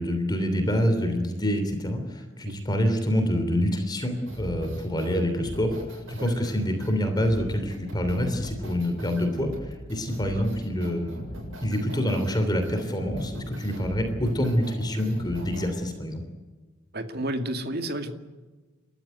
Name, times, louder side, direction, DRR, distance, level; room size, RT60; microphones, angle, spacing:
voice 1, 0.0-11.1 11.6-16.2, equal, 20° left, 6 dB, 3.2 m, -26 dB
sound 1, 4.3-15.7, equal, 65° right, 7.9 m, -39 dB
voice 2, 16.9-18.1, right 1 dB, 50° right, 7 dB, 2.2 m, -31 dB
29.5 x 13.5 x 9.6 m, 1.3 s
head